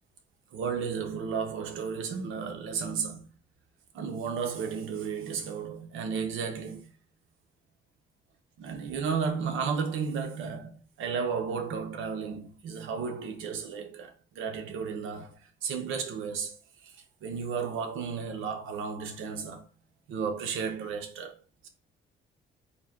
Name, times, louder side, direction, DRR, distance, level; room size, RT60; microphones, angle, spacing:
voice 1, 0.5-3.3 3.9-6.9 8.6-16.9 17.2-19.7 20.1-21.7, right 6 dB, 90° right, 0.9 m, -33 dB
3.9 x 2.8 x 3.7 m
cardioid pair, 90°, 20 cm